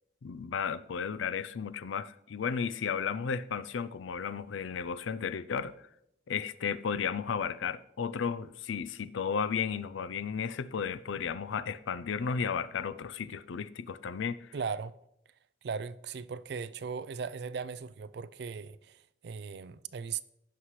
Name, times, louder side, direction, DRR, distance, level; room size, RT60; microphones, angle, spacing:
voice 1, 0.2-5.7 6.3-14.5, left 6 dB, 85° left, 0.4 m, -34 dB
voice 2, 14.5-14.9 15.6-20.2, right 6 dB, 60° right, 0.4 m, -38 dB
15.5 x 5.8 x 3.2 m
head